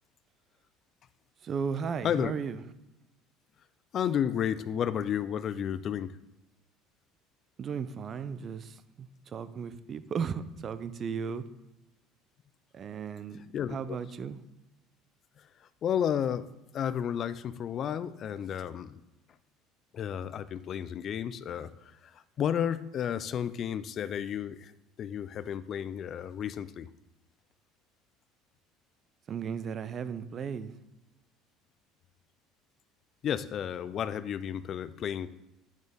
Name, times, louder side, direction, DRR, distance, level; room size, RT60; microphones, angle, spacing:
voice 1, 1.4-2.6 7.6-11.5 12.7-13.4 13.7-14.4 29.3-30.7, right 6 dB, 40° right, 13 dB, 0.6 m, -35 dB
voice 2, 3.9-6.2 13.5-14.0 15.8-19.0 19.9-24.7 25.0-26.9 33.2-35.3, left 9 dB, 50° left, 15 dB, 0.4 m, -32 dB
8.9 x 6.2 x 3.6 m, 0.93 s
supercardioid pair, 90°, 0 cm